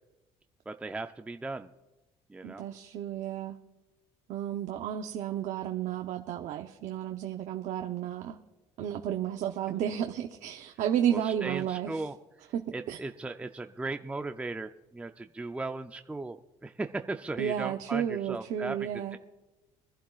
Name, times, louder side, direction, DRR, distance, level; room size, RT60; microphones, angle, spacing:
voice 1, 0.7-1.7 2.3-2.7 11.1-12.1 12.7-16.4 16.6-19.2, right 2 dB, 10° right, 7 dB, 0.5 m, -37 dB
voice 2, 2.4-3.5 4.3-8.4 8.8-12.0 12.5-12.6 12.9-13.0 17.4-19.2, right 10 dB, 70° right, 4 dB, 0.8 m, -32 dB
24.0 x 11.5 x 2.4 m, 1.1 s
cardioid pair, 110°, 13 cm